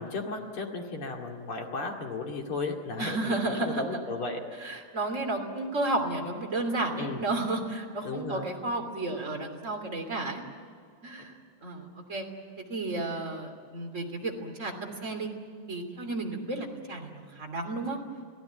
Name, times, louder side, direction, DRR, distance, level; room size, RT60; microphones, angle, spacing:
voice 1, 0.0-4.4 7.0-7.2 8.0-8.5, left 3 dB, 40° left, 1 dB, 2.1 m, -35 dB
voice 2, 3.0-3.8 4.6-10.4 11.0-12.3 12.6-15.3 15.7-18.0, right 2 dB, 20° right, 2 dB, 2.2 m, -32 dB
27.5 x 17.0 x 9.3 m, 2.1 s
omnidirectional pair, 5.6 m